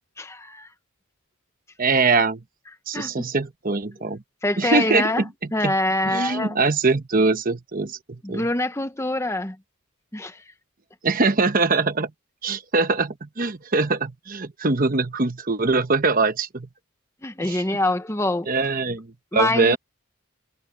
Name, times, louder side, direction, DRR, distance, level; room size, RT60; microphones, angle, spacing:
voice 1, 0.2-0.7 2.9-3.2 4.4-6.6 8.2-9.6 10.1-10.4 17.2-18.5 19.3-19.8, left 1 dB, 15° left, 0.9 m, -25 dB
voice 2, 1.8-2.4 2.9-4.2 4.6-5.1 5.6-5.7 6.0-8.4 11.0-12.1 12.4-16.7 17.4-17.6 18.5-19.1 19.3-19.8, right 3 dB, 40° right, 1.0 m, -22 dB
head